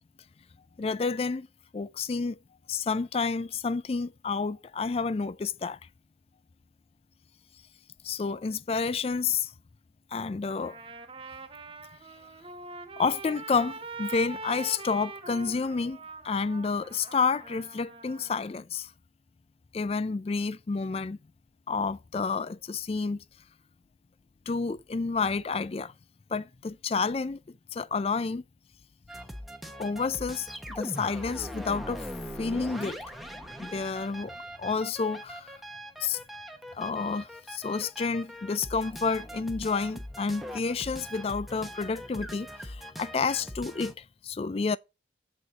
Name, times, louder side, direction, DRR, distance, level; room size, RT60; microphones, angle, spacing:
voice 1, 0.8-1.5 1.7-2.4 2.7-5.8 8.0-9.5 10.1-10.8 13.0-18.9 19.7-21.2 21.7-23.2 24.5-25.9 26.3-27.4 27.7-28.4 29.8-32.1 32.4-33.0 33.6-35.5 36.0-36.2 36.7-44.8, left 4 dB, 35° left, 0.4 m, -30 dB
Trumpet, 10.5-18.5, right 3 dB, 30° right, 0.9 m, -43 dB
sound 1, 29.1-43.9, equal, ahead, 0.9 m, -41 dB
8.1 x 4.2 x 6.1 m
head